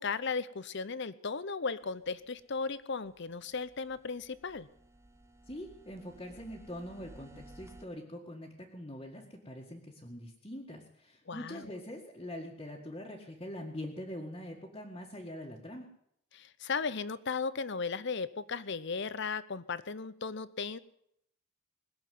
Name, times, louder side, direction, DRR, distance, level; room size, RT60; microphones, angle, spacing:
voice 1, 0.0-4.7 11.3-11.7 16.3-20.8, left 5 dB, 55° left, 16 dB, 0.7 m, -36 dB
sound 1, 1.8-7.8, right 1 dB, 15° right, 0.7 m, -57 dB
voice 2, 5.5-15.9, left 1 dB, 25° left, -3 dB, 1.9 m, -43 dB
21.0 x 7.1 x 9.4 m, 0.74 s
head